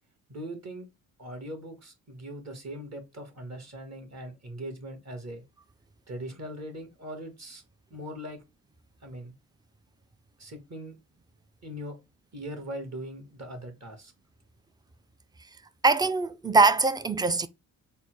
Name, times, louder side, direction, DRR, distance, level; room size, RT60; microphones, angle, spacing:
voice 1, 0.3-0.9 1.2-5.4 6.1-7.6 7.9-8.4 9.0-9.3 10.4-11.0 11.6-12.0 12.3-14.1, equal, 45° right, 1.6 m, -40 dB
voice 2, 15.8-17.5, right 3 dB, 10° right, 0.4 m, -22 dB
4.2 x 2.2 x 4.5 m
cardioid pair, 65°, 38 cm